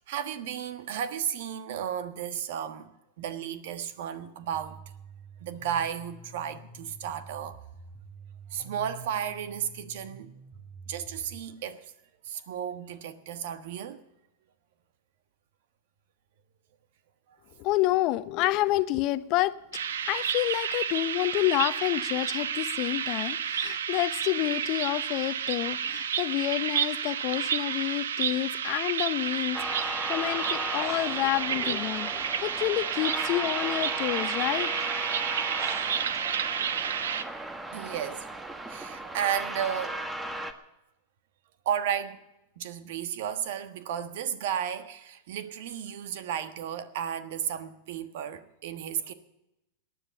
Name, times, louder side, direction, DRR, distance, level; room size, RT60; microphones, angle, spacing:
voice 1, 0.1-2.9 3.2-4.8 5.4-7.6 8.5-10.3 10.9-11.9 12.2-14.0 37.7-38.3 38.7-40.0 41.6-42.2 42.6-49.1, right 9 dB, 65° right, 1.4 m, -33 dB
sound 1, 4.5-11.4, right 4 dB, 45° right, 3.4 m, -47 dB
voice 2, 17.6-19.5 20.1-34.7, left 16 dB, 50° left, 0.7 m, -29 dB
sound 2, 19.7-37.2, right 8 dB, 80° right, 0.9 m, -31 dB
sound 3, 29.5-40.5, right 1 dB, 10° right, 1.4 m, -36 dB
18.5 x 10.0 x 6.9 m
hypercardioid pair, 110°, 0 cm